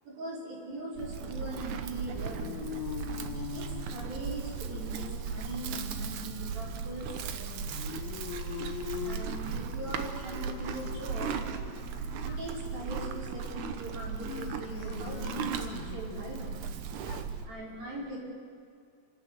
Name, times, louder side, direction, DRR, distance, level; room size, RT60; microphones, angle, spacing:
voice 1, 0.0-2.7 3.3-7.7 9.0-11.5 12.2-16.6 17.4-18.2, right 1 dB, 60° right, -5 dB, 6.7 m, -41 dB
Livestock farm animals working animals, 1.0-17.5, right 6 dB, 75° right, 1.8 m, -37 dB
sound 1, 1.9-16.4, left 11 dB, 75° left, 2.5 m, -44 dB
voice 2, 8.1-9.2 11.7-12.4 13.8-13.9 17.1-17.3, left 9 dB, 90° left, 9 dB, 1.9 m, -56 dB
28.5 x 13.0 x 8.2 m, 2.2 s
omnidirectional pair, 4.8 m